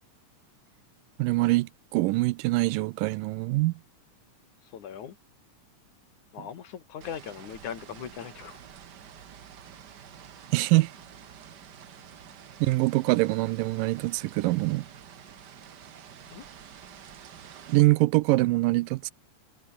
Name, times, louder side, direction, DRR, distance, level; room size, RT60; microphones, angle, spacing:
voice 1, 1.2-3.7 10.5-10.9 12.6-14.9 17.7-19.1, right 20 dB, 90° right, 2.3 m, -24 dB
voice 2, 4.6-5.2 6.3-8.6 16.3-16.5, left 8 dB, 65° left, 3.4 m, -39 dB
sound 1, 7.0-17.8, right 8 dB, 60° right, 1.0 m, -48 dB
omnidirectional pair, 3.8 m